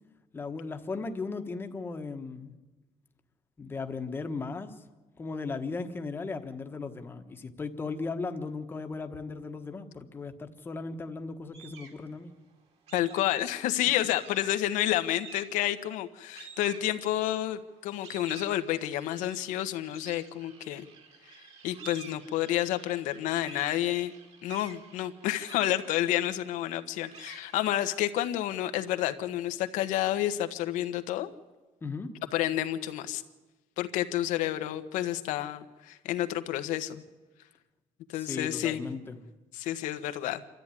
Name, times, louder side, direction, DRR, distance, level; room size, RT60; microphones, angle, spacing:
voice 1, 0.3-2.5 3.6-4.7 5.2-12.3 31.8-32.1 38.2-39.2, left 4 dB, 15° left, 6 dB, 1.3 m, -37 dB
sound 1, 11.5-12.1 12.9-13.5 13.9-14.6 15.1-15.7 16.3-17.3 17.8-28.5, right 6 dB, 55° right, 3.3 m, -50 dB
voice 2, 12.9-20.9 21.6-24.1 24.4-31.3 32.3-33.2 33.8-37.0 38.1-38.8 39.5-40.4, left 13 dB, 90° left, 9 dB, 1.3 m, -30 dB
27.5 x 13.5 x 9.8 m, 1.2 s
cardioid pair, 180°, 13 cm